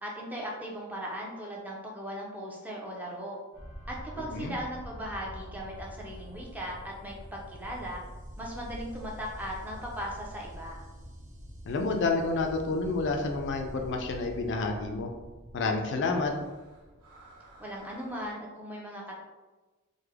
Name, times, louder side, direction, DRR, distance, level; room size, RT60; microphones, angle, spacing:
voice 1, 0.0-3.4 3.9-8.0 8.4-10.9 17.6-19.2, equal, 5° right, -3 dB, 0.5 m, -38 dB
sound 1, 3.5-18.3, equal, 80° right, 0.8 m, -46 dB
voice 2, 4.2-4.5 11.7-15.1 15.5-16.3, left 3 dB, 55° left, 3 dB, 0.4 m, -29 dB
3.3 x 2.1 x 3.4 m, 1.2 s
head